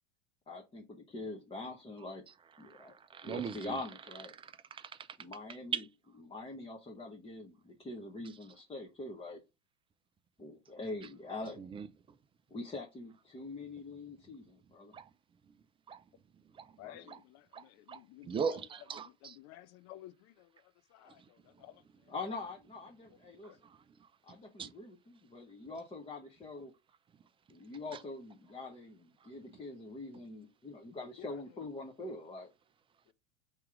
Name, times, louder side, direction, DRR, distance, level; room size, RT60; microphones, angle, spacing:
voice 1, 0.5-2.2 2.6-2.9 3.2-4.3 5.2-5.8 6.2-9.4 10.4-11.8 12.5-14.9 16.8-17.2 22.1-23.6 24.2-26.7 27.5-32.5, left 2 dB, 15° left, 0.9 m, -44 dB
voice 2, 2.6-3.8 4.3-5.1 5.7-5.9 11.6-11.9 14.9-15.1 15.9-16.0 16.5-16.7 17.1-17.2 17.5-19.4 21.1-21.3 21.5-21.6 23.4-24.1 24.6-24.7 29.2-29.3, right 6 dB, 15° right, 0.4 m, -40 dB
voice 3, 16.8-18.6 19.2-20.6 20.9-21.8 23.4-23.6 31.2-31.3, left 14 dB, 50° left, 0.6 m, -53 dB
3.6 x 2.9 x 4.8 m
hypercardioid pair, 95°, 33 cm